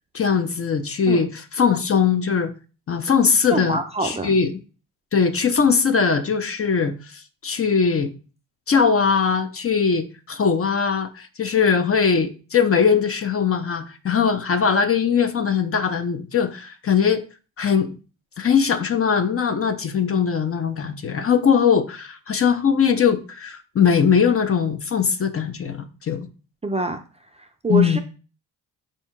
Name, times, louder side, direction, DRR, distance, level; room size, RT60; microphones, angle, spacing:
voice 1, 0.1-2.5 2.9-4.5 5.1-8.1 8.7-17.2 17.6-18.0 18.4-26.3 27.7-28.0, left 6 dB, 35° left, 0.6 m, -20 dB
voice 2, 3.5-4.3 26.6-27.0 27.6-28.0, right 2 dB, 15° right, 0.4 m, -24 dB
4.2 x 2.7 x 3.6 m
supercardioid pair, 60°, 40 cm